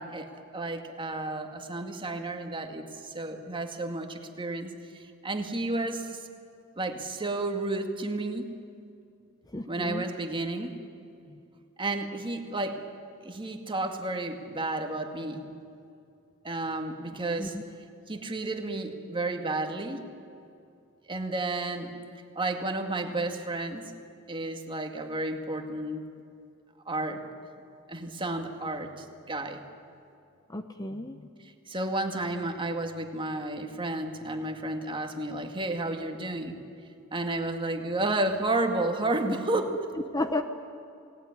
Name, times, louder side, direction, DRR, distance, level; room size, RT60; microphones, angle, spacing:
voice 1, 0.0-6.2 6.8-8.5 9.7-10.7 11.8-12.8 13.2-15.4 16.4-17.6 18.1-20.0 21.1-21.9 22.4-23.9 24.3-26.1 26.9-27.2 27.9-29.6 31.7-36.6 37.1-39.7, right 2 dB, 25° right, 4 dB, 2.1 m, -32 dB
voice 2, 9.5-10.1 11.3-11.4 17.4-17.6 30.5-31.3 40.1-40.4, left 2 dB, 20° left, 7 dB, 0.9 m, -33 dB
28.5 x 19.0 x 9.7 m, 2.5 s
head